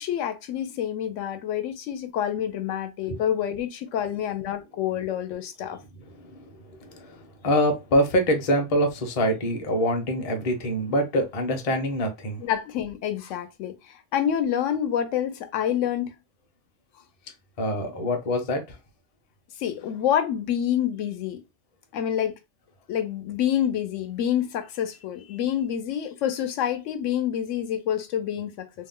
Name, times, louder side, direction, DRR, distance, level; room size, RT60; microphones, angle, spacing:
voice 1, 0.0-5.8 12.4-16.1 19.6-21.4 21.9-22.3 22.9-28.7, left 10 dB, 80° left, 0.9 m, -27 dB
voice 2, 6.1-12.4 17.6-18.8 25.3-25.4, equal, 40° left, 0.6 m, -25 dB
2.6 x 2.0 x 3.6 m
omnidirectional pair, 1.3 m